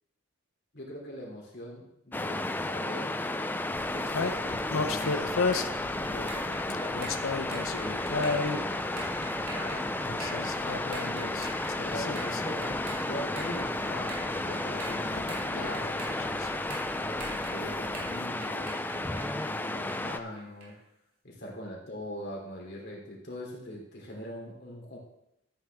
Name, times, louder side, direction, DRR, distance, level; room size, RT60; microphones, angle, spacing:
voice 1, 0.7-3.2 3.9-7.0 7.7-10.5 11.3-16.4 16.9-20.7 21.2-25.0, equal, 50° left, -1 dB, 3.1 m, -42 dB
Waves surf, 2.1-20.2, left 2 dB, 10° left, 0.3 m, -33 dB
sound 1, 3.0-20.8, right 2 dB, 85° right, 3.4 m, -45 dB
sound 2, 3.7-18.2, left 4 dB, 70° left, 0.6 m, -36 dB
13.0 x 9.0 x 3.5 m, 0.81 s
head